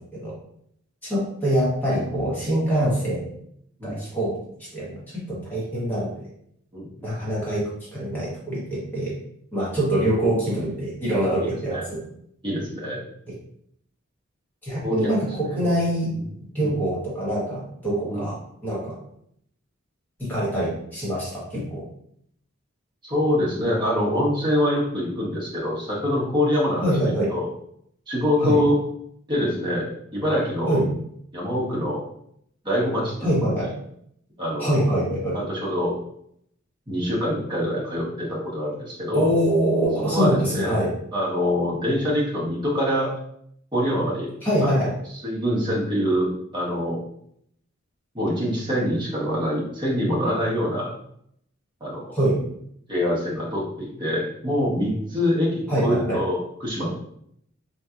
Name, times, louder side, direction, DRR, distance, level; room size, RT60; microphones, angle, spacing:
voice 1, 1.0-3.2 3.8-4.3 4.7-6.1 7.0-9.1 9.5-12.0 14.6-16.1 16.5-18.4 18.6-18.9 20.2-21.8 26.8-27.3 28.4-28.6 30.7-30.9 33.2-33.7 34.6-35.4 39.1-40.9 44.4-44.9 52.1-52.4 55.7-56.2, right 1 dB, 10° left, -7 dB, 1.0 m, -24 dB
voice 2, 6.7-7.1 11.7-11.8 12.4-13.0 14.8-15.2 15.4-15.6 16.1-16.2 16.6-16.8 18.1-18.3 23.0-27.5 28.1-28.8 29.3-30.8 31.3-32.0 32.6-33.5 34.4-34.8 35.3-36.0 36.9-39.3 40.1-40.8 41.1-43.1 43.7-44.3 44.6-44.8 45.2-47.0 48.1-50.9 51.8-52.2 52.9-56.9, equal, 20° right, -6 dB, 1.0 m, -25 dB
3.7 x 2.8 x 2.4 m, 0.71 s
head